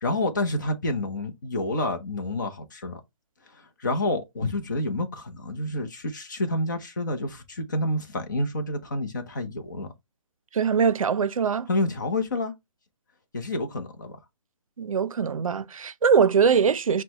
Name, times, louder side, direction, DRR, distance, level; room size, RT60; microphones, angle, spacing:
voice 1, 0.0-3.0 3.6-9.9 11.7-12.5 13.3-14.2, left 1 dB, 35° left, 0.8 m, -28 dB
voice 2, 10.5-11.7 14.8-17.0, right 6 dB, 85° right, 0.5 m, -22 dB
5.9 x 2.2 x 3.0 m
hypercardioid pair, 175°, 17 cm